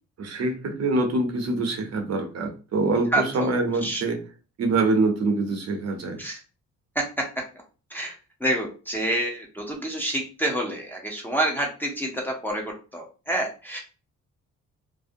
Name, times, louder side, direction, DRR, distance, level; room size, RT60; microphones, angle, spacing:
voice 1, 0.2-4.2 4.6-6.2, right 3 dB, 60° right, 3 dB, 0.8 m, -25 dB
voice 2, 3.1-3.5 3.8-4.0 6.2-6.4 6.9-7.0 7.9-8.1 8.4-13.8, right 1 dB, 5° left, 0 dB, 0.7 m, -28 dB
2.7 x 2.0 x 2.5 m, 0.34 s
cardioid pair, 90°, 30 cm